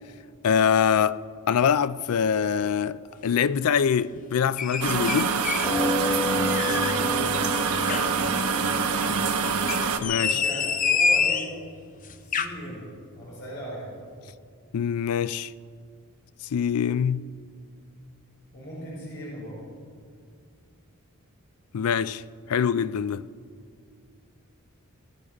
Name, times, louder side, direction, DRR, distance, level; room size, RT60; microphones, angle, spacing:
voice 1, 0.4-1.2 1.5-5.4 10.0-10.4 14.7-15.5 16.5-17.2 21.7-22.2 22.5-23.2, left 7 dB, 75° left, 0.4 m, -24 dB
sound 1, 4.6-5.7 6.1-7.0 7.4-8.1 9.5-11.5 12.1-12.5, left 5 dB, 35° left, 0.6 m, -26 dB
sound 2, 4.8-10.0, right 5 dB, 85° right, 1.0 m, -25 dB
sound 3, 5.6-10.6 11.4-11.5 11.8-11.9, left 1 dB, 20° left, 2.1 m, -31 dB
voice 2, 7.0-7.3 10.1-11.5 12.2-12.8 13.1-14.0 18.5-19.6, equal, 55° left, 4.8 m, -38 dB
19.5 x 12.5 x 5.0 m
head